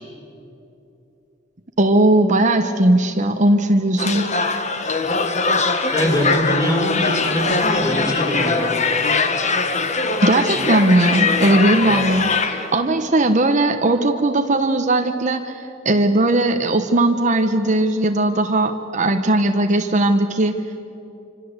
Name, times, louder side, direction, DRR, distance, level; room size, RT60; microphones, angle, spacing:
voice 1, 1.8-4.3 10.2-20.8, right 1 dB, 40° right, 6 dB, 1.1 m, -18 dB
sound 1, 4.0-12.7, left 4 dB, 35° left, 1.6 m, -21 dB
voice 2, 5.9-8.7, equal, 20° left, 0 dB, 4.8 m, -22 dB
27.5 x 25.5 x 8.1 m, 2.8 s
head